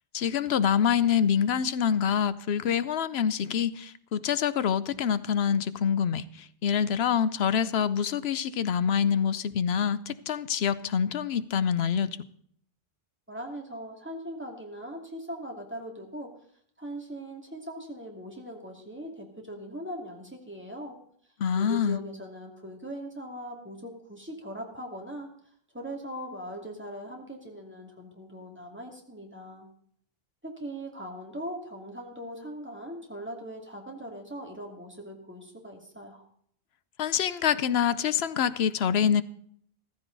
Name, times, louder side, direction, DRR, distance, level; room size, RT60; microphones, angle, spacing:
voice 1, 0.1-6.2 6.6-12.1 21.4-22.0 37.0-39.2, left 8 dB, 85° left, 1.0 m, -26 dB
voice 2, 13.3-16.3 16.8-21.0 21.5-25.3 25.7-29.7 30.4-36.3, equal, 10° right, 2.6 m, -40 dB
14.5 x 14.5 x 4.0 m
omnidirectional pair, 1.0 m